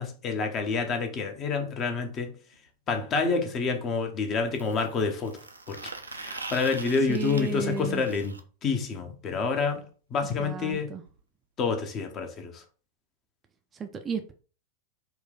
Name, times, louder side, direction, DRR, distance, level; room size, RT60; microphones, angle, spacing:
voice 1, 0.0-2.3 2.9-5.4 5.7-5.8 6.1-8.3 8.6-9.8 10.1-10.9 11.6-12.6, left 4 dB, 30° left, 0.9 m, -28 dB
sound 1, 2.5-2.6 4.5-8.4 10.3-10.4 10.7-10.8 11.1-11.2 12.1-12.2, right 3 dB, 80° right, 0.5 m, -42 dB
voice 2, 7.1-8.0 10.4-11.0 13.7-14.3, right 5 dB, 20° right, 0.4 m, -33 dB
4.3 x 2.3 x 3.7 m
figure-of-eight pair, 90°, 0 cm